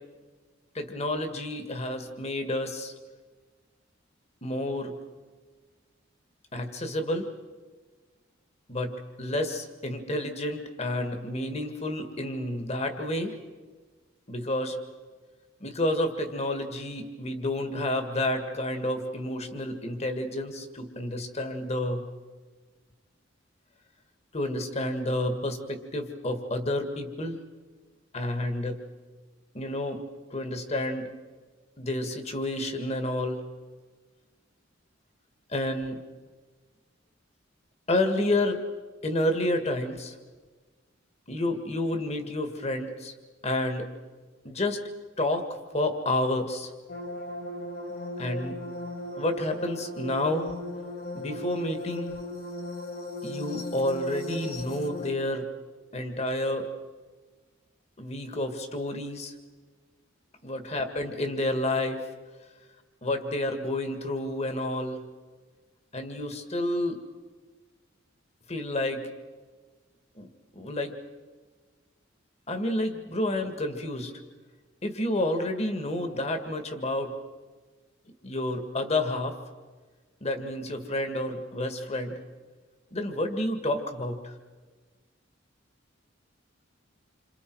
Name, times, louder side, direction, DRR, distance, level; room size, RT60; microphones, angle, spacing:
voice 1, 0.8-2.9 4.4-4.9 6.5-7.3 8.7-13.3 14.3-14.8 15.6-22.0 24.3-27.4 28.1-28.8 29.5-30.0 30.3-31.1 31.8-33.4 35.5-36.0 37.9-38.6 39.0-40.2 41.3-43.1 43.4-43.9 44.4-44.8 45.2-45.5 45.7-46.7 48.2-48.6 49.2-50.5 51.1-52.1 53.2-55.5 55.9-56.7 58.0-59.3 60.4-62.0 63.0-65.0 65.9-67.0 68.5-69.0 70.2-70.3 70.5-70.9 72.5-74.1 74.8-77.1 78.2-79.4 80.2-82.2 82.9-84.3, left 1 dB, 35° left, 6 dB, 1.9 m, -30 dB
sound 1, 46.9-55.1, left 1 dB, 50° left, 1.6 m, -37 dB
28.5 x 26.0 x 4.7 m, 1.4 s
head